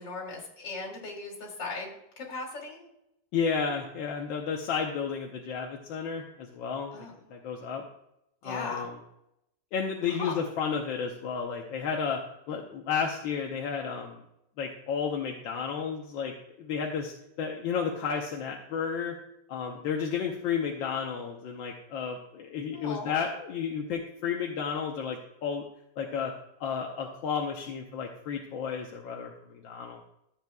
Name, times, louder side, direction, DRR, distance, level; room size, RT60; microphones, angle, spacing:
voice 1, 0.0-2.8 6.9-7.1 8.4-8.9 10.2-10.4 22.7-23.1, left 3 dB, 70° left, -1 dB, 3.1 m, -38 dB
voice 2, 3.3-7.8 8.4-9.0 9.7-12.2 12.5-14.2 14.6-19.2 19.5-25.7 26.0-26.3 26.6-30.0, left 6 dB, 90° left, 1 dB, 1.6 m, -32 dB
13.5 x 8.0 x 2.3 m, 0.82 s
omnidirectional pair, 2.0 m